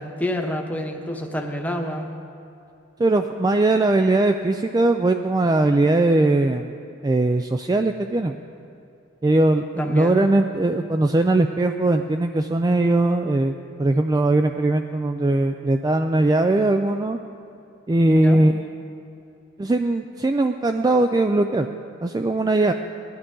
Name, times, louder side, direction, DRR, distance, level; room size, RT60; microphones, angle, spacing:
voice 1, 0.0-2.1 9.8-10.2 18.1-18.4, left 1 dB, 10° left, 2 dB, 1.0 m, -28 dB
voice 2, 3.0-6.7 7.0-8.3 9.2-13.5 13.8-17.2 17.9-18.7 19.6-21.7 22.0-22.7, right 2 dB, 20° right, 6 dB, 0.3 m, -20 dB
18.5 x 12.0 x 3.8 m, 2.7 s
head